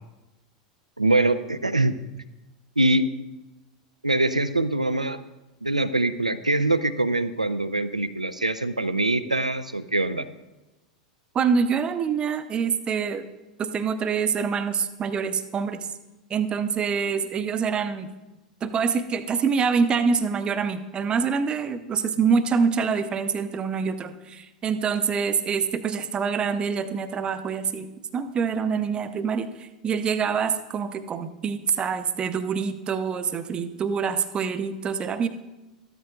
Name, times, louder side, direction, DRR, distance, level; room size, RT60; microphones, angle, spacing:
voice 1, 1.0-2.0 2.8-3.1 4.0-5.2 5.6-10.3, right 2 dB, 90° right, 13 dB, 0.5 m, -23 dB
voice 2, 11.3-13.3 13.6-15.9 16.3-18.1 18.6-35.3, right 6 dB, 25° right, 11 dB, 0.7 m, -25 dB
13.5 x 13.0 x 2.4 m, 1.0 s
figure-of-eight pair, 85°, 4 cm